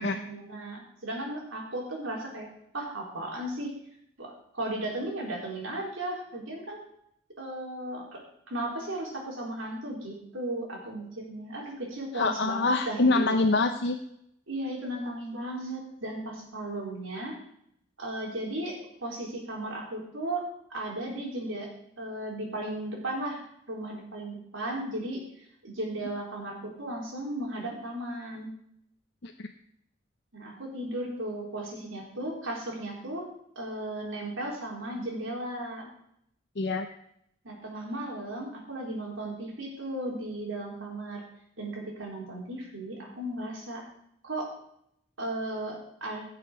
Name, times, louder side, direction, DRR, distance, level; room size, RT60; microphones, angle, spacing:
voice 1, 0.0-2.5 2.7-3.7 4.2-6.8 7.4-13.2 14.5-17.4 18.0-20.4 20.7-21.7 22.0-23.4 23.7-25.2 25.6-28.5 30.3-33.3 33.6-35.9 37.4-41.2 41.6-43.8 44.2-44.5 45.2-46.3, right 1 dB, 80° right, -1 dB, 4.1 m, -35 dB
voice 2, 12.1-14.0 29.2-29.3 36.6-36.9, left 3 dB, 55° left, 4 dB, 0.7 m, -25 dB
17.0 x 6.9 x 5.1 m, 0.73 s
head